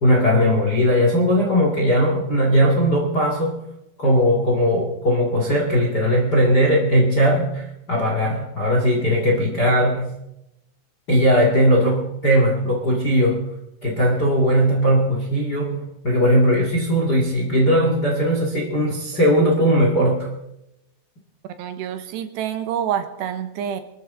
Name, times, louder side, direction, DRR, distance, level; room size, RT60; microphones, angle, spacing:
voice 1, 0.0-3.6 4.0-10.1 11.1-13.5 13.8-20.3, equal, 40° left, -1 dB, 1.5 m, -18 dB
voice 2, 21.6-23.8, right 9 dB, 80° right, 8 dB, 3.2 m, -27 dB
25.0 x 13.0 x 3.7 m, 0.87 s
omnidirectional pair, 5.0 m